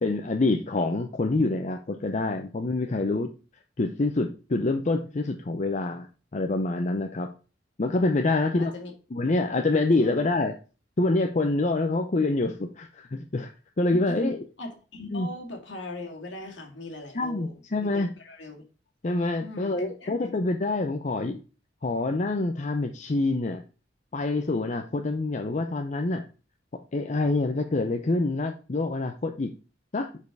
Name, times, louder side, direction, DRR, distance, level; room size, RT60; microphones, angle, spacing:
voice 1, 0.0-3.3 3.8-6.1 6.3-7.3 7.8-8.7 9.1-10.5 11.0-13.5 13.8-14.4 15.1-15.3 17.1-18.1 19.0-21.4 21.8-23.6 24.1-26.2 26.9-29.5 29.9-30.1, left 2 dB, 40° left, 5 dB, 0.6 m, -26 dB
voice 2, 8.5-8.9 10.0-10.1 13.9-14.3 14.6-17.5 17.8-18.6 19.4-20.3, left 1 dB, 70° left, 1 dB, 2.2 m, -39 dB
6.7 x 5.3 x 4.7 m, 0.35 s
head